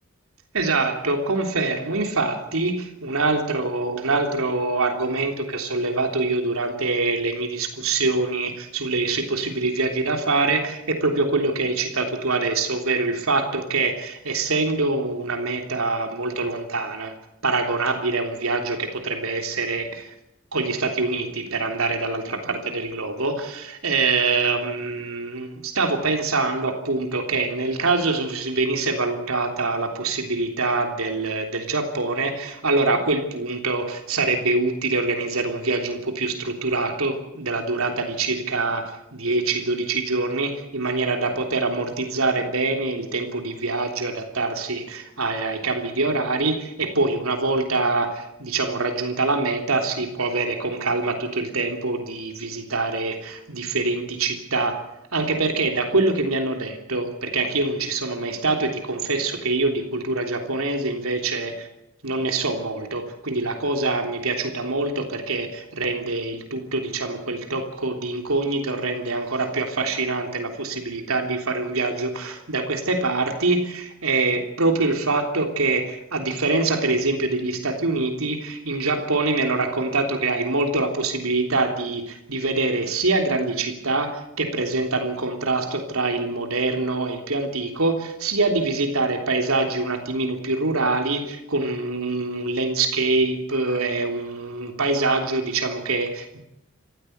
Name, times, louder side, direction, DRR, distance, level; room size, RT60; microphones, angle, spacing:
voice 1, 0.5-17.1 17.4-20.1 20.5-54.8 55.1-61.7 62.0-96.4, right 3 dB, 90° right, 4 dB, 3.4 m, -24 dB
27.5 x 15.0 x 8.1 m, 0.85 s
head